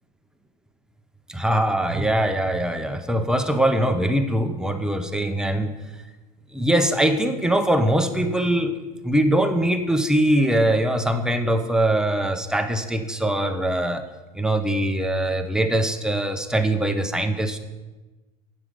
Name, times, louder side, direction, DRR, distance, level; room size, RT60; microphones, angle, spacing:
voice 1, 1.3-5.7 6.5-8.8 9.0-14.0 14.3-17.6, right 1 dB, 5° right, 6 dB, 0.6 m, -22 dB
9.5 x 7.3 x 5.1 m, 1.2 s
supercardioid pair, 135°, 19 cm